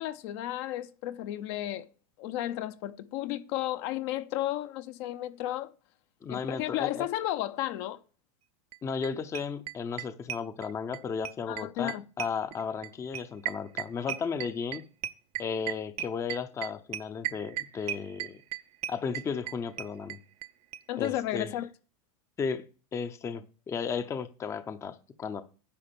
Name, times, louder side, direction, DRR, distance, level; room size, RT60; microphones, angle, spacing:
voice 1, 0.0-1.9 2.2-5.7 6.5-8.0 11.5-12.0 20.9-21.7, left 14 dB, 50° left, 0.7 m, -33 dB
voice 2, 6.2-7.1 8.8-14.8 15.4-18.4 18.9-20.2 21.0-21.5 22.4-22.6 22.9-25.4, left 6 dB, 15° left, 0.6 m, -34 dB
sound 1, 8.7-8.8 9.0-9.1 9.3-11.0 11.2-20.5 20.7-20.8 21.0-21.1 21.4-21.5, right 13 dB, 35° right, 0.6 m, -35 dB
10.0 x 5.8 x 6.9 m
supercardioid pair, 145°, 18 cm